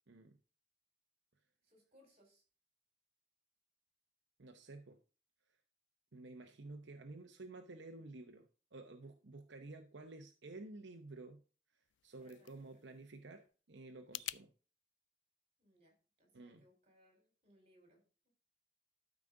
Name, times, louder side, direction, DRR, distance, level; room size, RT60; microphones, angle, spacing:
voice 1, 0.1-0.4 4.4-5.0 6.1-11.4 11.7-14.5 16.3-16.6, right 2 dB, 80° right, 5 dB, 0.8 m, -52 dB
voice 2, 1.6-2.4 12.2-12.8 15.6-18.0, equal, 40° right, 1 dB, 4.5 m, -69 dB
sound 1, 11.8-14.4, left 15 dB, 80° left, 0.3 m, -50 dB
12.0 x 5.1 x 3.8 m, 0.37 s
head